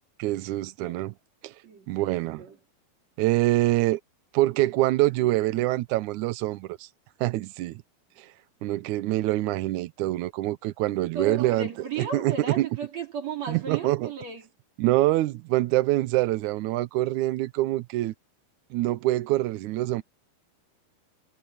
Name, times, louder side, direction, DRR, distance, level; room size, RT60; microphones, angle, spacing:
voice 1, 0.2-1.1 1.4-1.6 1.9-2.4 3.2-4.0 4.3-6.9 7.2-7.8 8.2-8.3 8.6-11.7 12.0-12.7 13.5-14.1 14.8-18.1 18.7-20.0, right 17 dB, 85° right, 1.7 m, -25 dB
voice 2, 1.6-2.6 11.1-14.4, right 6 dB, 45° right, 4.2 m, -35 dB
omnidirectional pair, 4.3 m